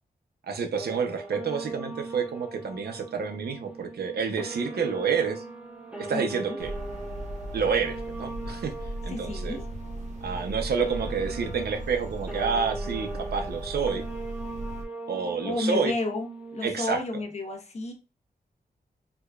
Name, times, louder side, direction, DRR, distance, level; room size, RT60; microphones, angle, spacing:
voice 1, 0.5-5.4 6.0-6.8 7.5-8.8 9.0-9.6 10.2-14.0 15.1-15.9 16.6-17.0, right 6 dB, 80° right, 0.6 m, -29 dB
sound 1, 0.7-17.1, right 2 dB, 5° right, 0.6 m, -40 dB
voice 2, 6.1-6.6 9.1-9.6 15.4-17.9, left 2 dB, 45° left, 0.8 m, -32 dB
sound 2, 6.6-14.8, right 1 dB, 50° right, 0.8 m, -37 dB
4.7 x 2.2 x 2.3 m
wide cardioid pair, 150°, 16 cm